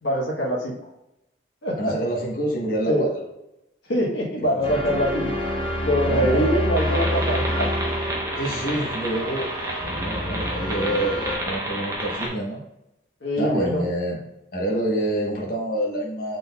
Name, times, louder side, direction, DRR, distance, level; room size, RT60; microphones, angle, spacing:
voice 1, 0.0-0.8 1.6-1.9 2.9-3.1 3.9-5.3 5.8-7.9 13.2-13.8, equal, 75° left, -4 dB, 1.2 m, -24 dB
voice 2, 1.8-3.2 4.4-5.0 6.0-6.5 8.3-9.5 9.8-11.2 11.4-12.6 13.4-14.2 14.5-16.4, right 1 dB, 50° left, -2 dB, 1.1 m, -27 dB
sound 1, 4.6-11.3, equal, 30° left, 0.8 m, -28 dB
sound 2, 6.8-12.3, right 1 dB, 15° right, 0.8 m, -30 dB
5.7 x 3.9 x 2.3 m, 0.87 s
head